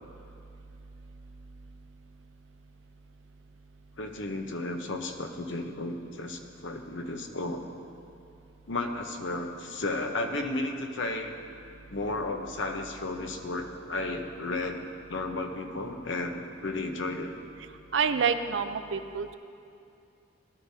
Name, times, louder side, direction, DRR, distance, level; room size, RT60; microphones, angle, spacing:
voice 1, 4.0-7.6 8.7-11.3 11.9-14.8 15.1-17.3, left 2 dB, 70° left, 4 dB, 0.9 m, -33 dB
voice 2, 17.9-19.3, right 6 dB, 70° right, 9 dB, 0.5 m, -27 dB
16.5 x 11.5 x 2.8 m, 2.5 s
head